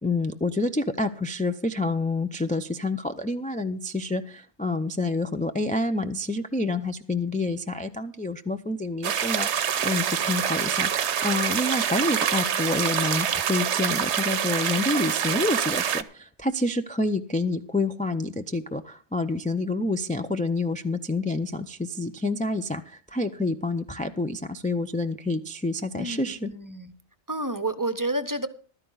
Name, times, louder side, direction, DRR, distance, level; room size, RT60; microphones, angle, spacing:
voice 1, 0.0-26.5, left 2 dB, 15° left, 6 dB, 0.3 m, -28 dB
sound 1, 9.0-16.0, right 8 dB, 80° right, 1.1 m, -26 dB
voice 2, 26.0-26.9 27.3-28.5, right 1 dB, 20° right, 12 dB, 0.7 m, -30 dB
14.5 x 12.5 x 3.9 m, 0.40 s
omnidirectional pair, 1.2 m